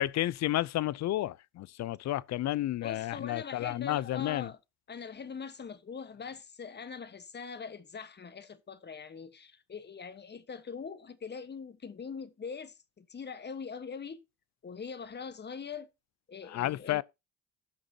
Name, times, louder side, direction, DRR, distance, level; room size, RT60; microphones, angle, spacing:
voice 1, 0.0-4.5 16.5-17.0, left 14 dB, 45° left, 0.5 m, -31 dB
voice 2, 2.8-4.6 4.9-14.2 14.6-15.9 16.3-17.0, left 6 dB, 25° left, 1.2 m, -42 dB
15.0 x 6.1 x 2.8 m
hypercardioid pair, 70°, 38 cm